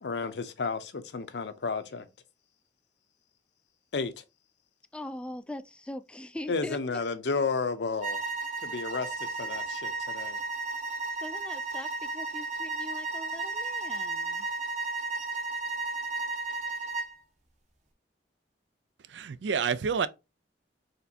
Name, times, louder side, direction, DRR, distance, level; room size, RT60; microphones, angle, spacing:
voice 1, 0.0-2.1 3.9-4.2 6.5-8.2 8.6-10.4, left 4 dB, 70° left, 0.6 m, -32 dB
voice 2, 4.9-6.8 11.2-14.5, left 1 dB, 5° left, 0.3 m, -41 dB
sound 1, 8.0-17.2, right 3 dB, 45° right, 0.9 m, -34 dB
voice 3, 19.1-20.1, right 6 dB, 85° right, 0.4 m, -28 dB
4.3 x 3.3 x 2.7 m
head